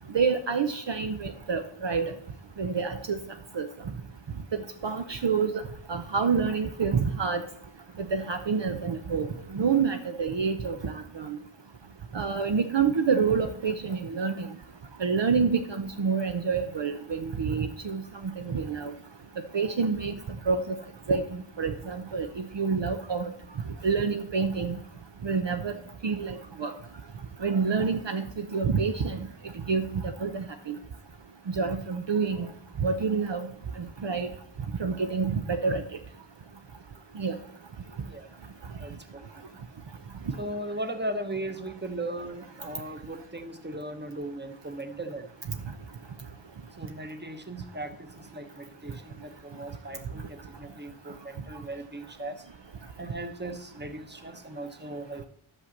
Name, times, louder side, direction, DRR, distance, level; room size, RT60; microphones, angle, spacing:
voice 1, 0.1-2.1 2.6-3.2 3.5-3.7 4.5-5.6 5.9-7.4 8.0-9.3 9.5-11.4 12.1-14.5 15.0-18.9 19.5-20.1 20.5-20.8 21.1-23.3 23.8-24.8 25.2-26.7 27.4-29.3 29.7-30.8 31.6-32.5 32.8-33.5 33.8-34.3 34.8-35.8 37.2-37.3 40.3-40.4, right 5 dB, 60° right, 7 dB, 0.8 m, -28 dB
voice 2, 38.8-39.6 40.4-45.3 46.8-52.5 53.0-55.3, right 1 dB, 20° right, 8 dB, 1.1 m, -38 dB
11.5 x 5.5 x 7.2 m, 0.68 s
wide cardioid pair, 65°, 49 cm